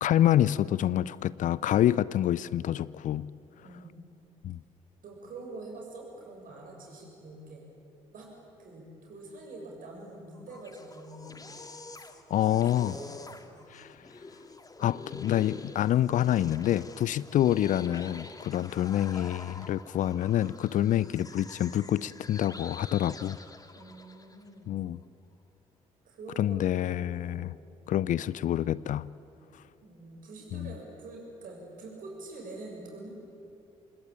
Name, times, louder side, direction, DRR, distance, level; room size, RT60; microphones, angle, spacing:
voice 1, 0.0-3.3 4.4-4.6 12.3-13.0 13.7-14.0 14.8-23.4 24.7-25.0 26.4-27.5 27.9-29.1 30.5-30.7, left 12 dB, 50° left, 20 dB, 0.5 m, -27 dB
voice 2, 3.6-4.0 5.0-7.6 8.1-8.3 8.6-11.4 12.4-13.1 13.4-13.8 20.9-21.1 23.7-24.7 26.0-26.8 27.1-27.5 29.8-33.1, right 2 dB, 50° right, 0 dB, 7.3 m, -45 dB
sound 1, 10.3-24.5, left 3 dB, 20° left, 2.0 m, -47 dB
26.5 x 20.5 x 8.8 m, 2.7 s
figure-of-eight pair, 45°, 17 cm